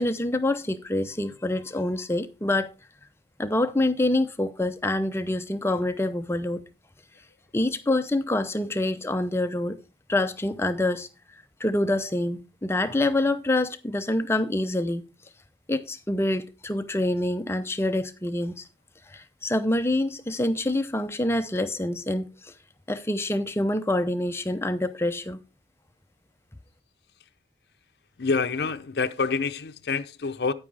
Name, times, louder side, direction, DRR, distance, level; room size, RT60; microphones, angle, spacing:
voice 1, 0.0-2.7 3.4-6.6 7.5-9.8 10.1-11.1 11.6-15.0 15.7-18.6 19.1-22.5 22.9-25.4, left 1 dB, 15° left, 0.6 m, -26 dB
voice 2, 28.2-30.5, left 4 dB, 60° left, 0.6 m, -27 dB
9.7 x 8.9 x 3.3 m
head